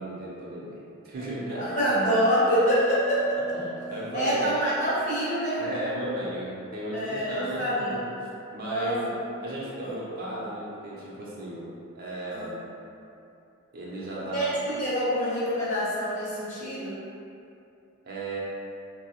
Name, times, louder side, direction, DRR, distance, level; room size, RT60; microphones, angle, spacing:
voice 1, 0.0-1.7 3.5-4.5 5.6-8.0 8.5-9.0 9.4-11.7 11.9-12.6 13.7-14.4 18.0-18.4, right 1 dB, 45° right, -6 dB, 0.5 m, -35 dB
Bell, 1.1-6.2, right 2 dB, 70° left, 0.4 m, -42 dB
voice 2, 1.6-3.6 4.1-5.6 6.9-8.0 8.6-9.1 9.8-9.9 12.3-12.5 14.2-17.0, equal, 35° left, -9 dB, 0.8 m, -26 dB
3.0 x 2.0 x 2.8 m, 2.6 s
head